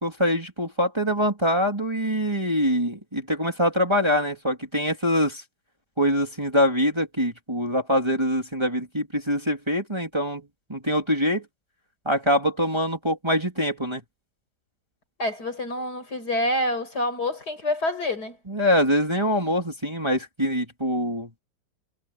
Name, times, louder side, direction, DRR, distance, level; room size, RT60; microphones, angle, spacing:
voice 1, 0.0-5.4 6.0-11.4 12.0-14.0 18.5-21.4, equal, 15° right, 3.3 m, -24 dB
voice 2, 15.2-18.4, left 1 dB, 60° left, 6.5 m, -27 dB
omnidirectional pair, 1.9 m